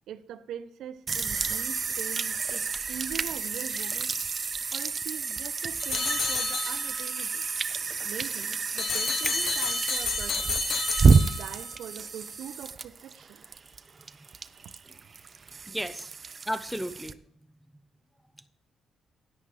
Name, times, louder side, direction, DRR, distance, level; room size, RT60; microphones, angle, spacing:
voice 1, 0.1-4.1 4.7-7.5 8.0-10.6 11.1-13.4, right 9 dB, 80° right, 0.7 m, -42 dB
sound 1, 1.1-17.1, right 4 dB, 40° right, 0.6 m, -29 dB
sound 2, 5.8-7.1 8.8-11.8, left 6 dB, 60° left, 0.9 m, -31 dB
voice 2, 15.7-16.1 16.5-17.2, equal, ahead, 0.8 m, -33 dB
13.5 x 9.5 x 3.3 m
cardioid pair, 90°, 0 cm